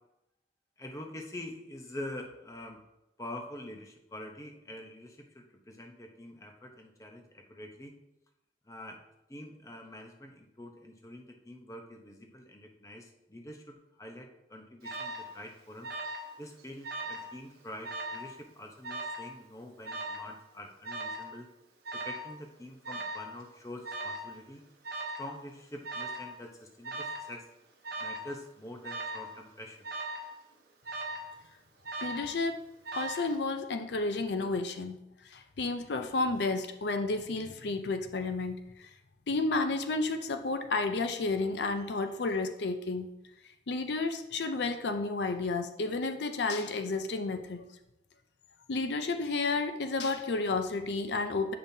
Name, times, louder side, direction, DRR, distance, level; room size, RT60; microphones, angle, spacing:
voice 1, 0.8-2.8 3.2-7.9 8.7-9.0 9.3-15.9 16.4-21.5 21.9-24.6 25.2-27.4 28.0-29.8, left 1 dB, 20° left, 3 dB, 0.7 m, -45 dB
Alarm, 14.8-15.3 15.8-16.3 16.6-17.3 17.8-18.3 18.8-19.3 19.8-20.3 20.8-21.3 21.8-22.3 22.8-23.3 23.8-24.3 24.8-25.3 25.8-26.3 26.8-27.3 27.8-28.3 28.8-29.3 29.8-30.3 30.8-31.3 31.8-32.3 32.8-33.3, right 2 dB, 60° right, 1.1 m, -38 dB
voice 2, 32.0-32.6 32.9-38.9 39.3-43.1 43.7-47.7 48.7-51.5, left 3 dB, 80° left, 7 dB, 0.5 m, -31 dB
8.6 x 5.4 x 2.7 m, 0.88 s
head